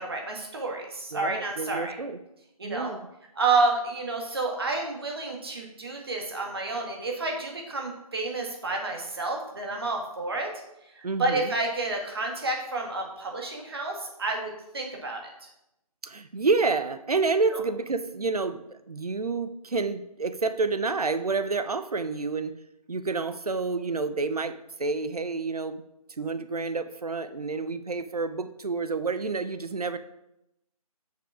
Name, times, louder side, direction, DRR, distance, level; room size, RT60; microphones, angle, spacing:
voice 1, 0.0-1.9 2.6-2.9 3.4-10.5 11.0-15.2, right 3 dB, 40° right, 1 dB, 1.8 m, -30 dB
voice 2, 1.1-2.2 2.6-3.0 11.0-11.5 16.0-22.6 22.9-25.8 26.2-30.0, right 4 dB, 75° right, 11 dB, 0.8 m, -29 dB
6.9 x 6.7 x 4.8 m, 0.84 s
figure-of-eight pair, 165°, 20 cm